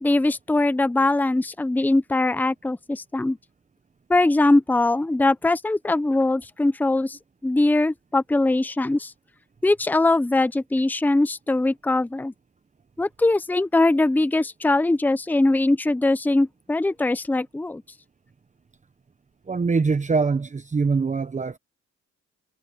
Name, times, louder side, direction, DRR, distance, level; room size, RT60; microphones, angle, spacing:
voice 1, 0.0-3.4 4.1-9.1 9.6-12.3 13.0-17.8, left 2 dB, 5° left, 0.7 m, -21 dB
voice 2, 19.5-21.6, right 4 dB, 25° right, 0.9 m, -23 dB
cardioid pair, 90°, 30 cm